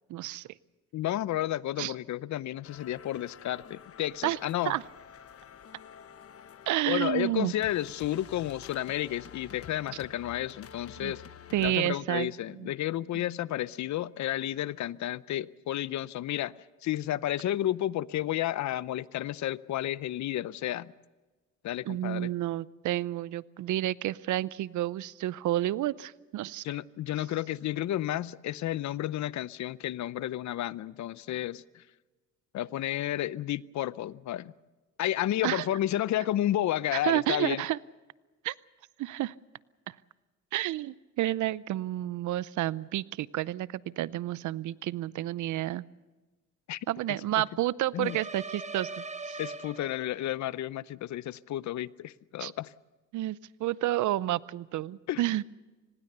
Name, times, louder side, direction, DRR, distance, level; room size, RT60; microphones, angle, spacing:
voice 1, 0.1-0.5 1.8-1.9 4.2-4.4 4.7-4.8 6.7-7.5 11.0-11.1 11.5-12.3 12.6-12.7 13.1-13.2 21.9-26.6 35.4-35.6 36.9-37.8 38.4-38.5 39.0-39.3 40.5-45.8 46.9-49.4 52.4-52.5 53.1-55.4, right 14 dB, 75° right, 0.6 m, -30 dB
voice 2, 0.9-4.7 6.9-11.2 11.6-16.6 16.8-20.9 21.6-22.3 26.6-31.8 32.5-34.5 35.0-37.6 46.7-46.9 47.4-47.5 47.9-48.2 49.4-52.7 55.1-55.2, left 13 dB, 70° left, 0.7 m, -32 dB
sound 1, 2.6-11.7, left 8 dB, 50° left, 1.1 m, -49 dB
sound 2, 48.0-50.3, right 3 dB, 25° right, 1.2 m, -40 dB
25.0 x 20.0 x 6.8 m
cardioid pair, 90°, 30 cm